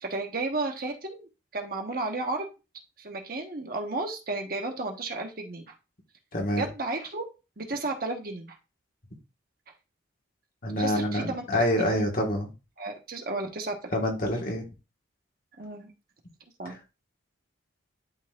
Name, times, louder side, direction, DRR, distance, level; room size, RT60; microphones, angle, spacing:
voice 1, 0.0-2.5 3.0-5.7 6.5-7.2 7.6-8.5 10.8-11.9 12.8-13.7 15.6-15.9 16.6-16.7, right 2 dB, 45° right, 2 dB, 1.1 m, -33 dB
voice 2, 6.3-6.7 10.6-12.5 13.9-14.6 16.7-16.8, equal, 45° left, 2 dB, 1.6 m, -26 dB
11.5 x 4.0 x 2.4 m, 0.29 s
head